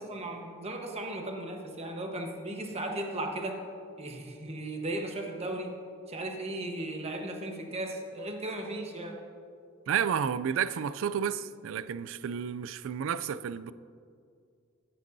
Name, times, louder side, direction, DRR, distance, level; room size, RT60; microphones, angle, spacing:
voice 1, 0.0-3.6 4.0-5.7 6.1-9.2, right 1 dB, 30° right, 1.1 m, -36 dB
voice 2, 9.9-13.7, right 8 dB, 70° right, 0.3 m, -31 dB
15.5 x 8.3 x 2.7 m
head